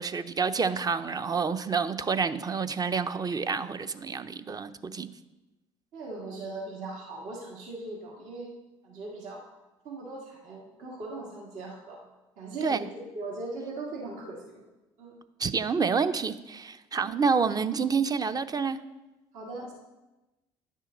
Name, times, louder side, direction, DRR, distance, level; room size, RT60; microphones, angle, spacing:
voice 1, 0.0-5.1 12.6-12.9 15.4-18.8, right 5 dB, 30° right, 0.6 m, -28 dB
voice 2, 5.9-8.5 8.8-9.4 9.8-12.0 12.4-14.6 15.0-15.1 17.0-17.1 19.3-19.7, right 2 dB, 70° right, 1.9 m, -39 dB
10.0 x 6.4 x 3.9 m
hypercardioid pair, 60°, 13 cm